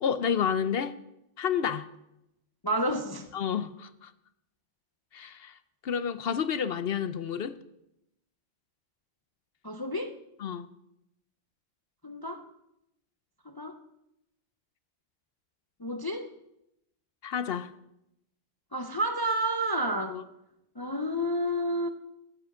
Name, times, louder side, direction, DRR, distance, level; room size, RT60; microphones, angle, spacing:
voice 1, 0.0-0.9 1.4-1.9 3.3-4.1 5.1-5.5 5.8-7.6 10.4-10.7 17.2-17.7 20.1-20.2, left 7 dB, 60° left, 13 dB, 0.8 m, -30 dB
voice 2, 2.6-3.3 9.6-10.2 12.0-12.4 13.5-13.8 15.8-16.3 18.7-20.2 20.8-21.9, right 1 dB, 25° left, 6 dB, 0.6 m, -30 dB
9.6 x 8.1 x 8.1 m, 0.83 s
omnidirectional pair, 1.2 m